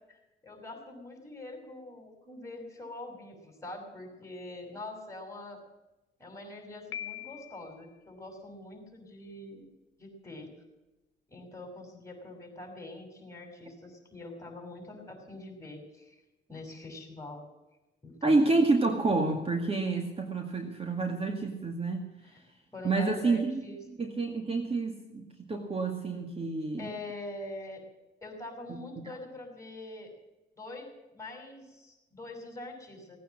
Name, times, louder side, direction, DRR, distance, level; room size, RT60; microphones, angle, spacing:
voice 1, 0.1-5.6 6.2-9.7 10.0-10.5 11.3-16.2 16.5-17.4 18.0-18.4 22.2-22.4 22.7-23.8 26.8-27.8 28.2-30.1 30.6-30.9 31.1-33.2, left 2 dB, 15° left, 3 dB, 5.8 m, -44 dB
Piano, 6.9-7.9, left 11 dB, 85° left, 1.1 m, -41 dB
voice 2, 18.2-22.0 22.8-26.9 28.7-29.1, right 3 dB, 30° right, 4 dB, 2.0 m, -29 dB
18.0 x 9.3 x 7.5 m, 1.0 s
cardioid pair, 90°, 20 cm